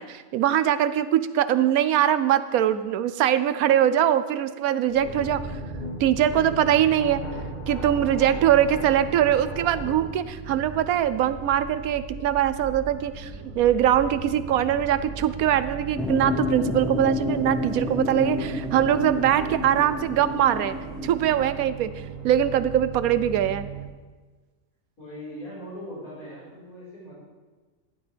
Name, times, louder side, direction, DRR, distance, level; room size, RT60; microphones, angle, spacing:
voice 1, 0.0-5.4 6.0-7.2 7.7-20.8 21.0-21.9 22.2-23.7, right 10 dB, 85° right, 13 dB, 1.1 m, -22 dB
sound 1, 4.9-10.1, equal, 30° left, 1.2 m, -36 dB
sound 2, 5.0-23.9, right 7 dB, 65° right, 1.4 m, -39 dB
sound 3, 16.0-21.5, left 2 dB, ahead, 0.8 m, -30 dB
voice 2, 25.0-27.1, equal, 85° left, -9 dB, 5.4 m, -40 dB
14.5 x 11.5 x 3.4 m, 1.3 s
omnidirectional pair, 1.5 m